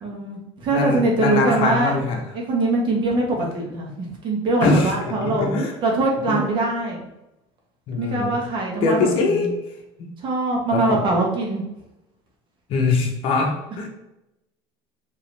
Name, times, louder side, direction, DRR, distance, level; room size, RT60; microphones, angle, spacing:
voice 1, 0.0-2.0 2.3-3.3 3.5-5.5 5.8-7.1 8.0-9.5 10.2-11.6, right 2 dB, 40° right, -1 dB, 1.3 m, -23 dB
voice 2, 0.7-2.2 4.6-5.7 6.3-6.4 7.9-8.4 8.8-9.5 10.0-10.1 10.7-11.0 12.7-13.9, left 3 dB, 50° left, 2 dB, 1.0 m, -22 dB
5.1 x 3.0 x 3.4 m, 0.91 s
cardioid pair, 135°, 12 cm